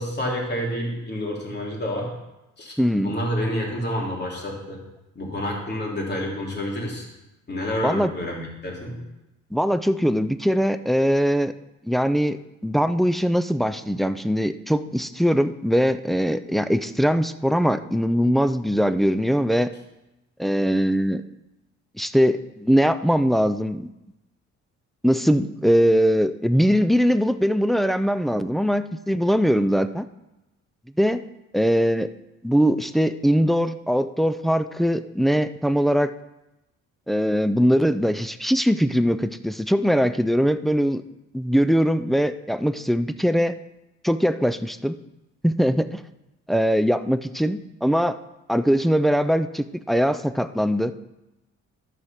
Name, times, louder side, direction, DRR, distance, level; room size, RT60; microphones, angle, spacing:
voice 1, 0.0-2.2 2.6-2.7 3.0-4.8 5.1-7.1 7.5-9.0, equal, 35° left, -2 dB, 3.2 m, -28 dB
voice 2, 2.8-3.1 7.8-8.1 9.5-11.5 11.8-12.4 12.6-19.7 20.4-21.2 22.0-23.9 25.0-30.0 31.0-31.2 31.5-32.1 32.4-36.1 37.1-41.0 41.3-43.6 44.0-45.0 45.4-46.0 46.5-48.2 48.5-50.9, equal, ahead, 11 dB, 0.4 m, -21 dB
12.5 x 4.9 x 5.8 m, 0.95 s
cardioid pair, 90°, 30 cm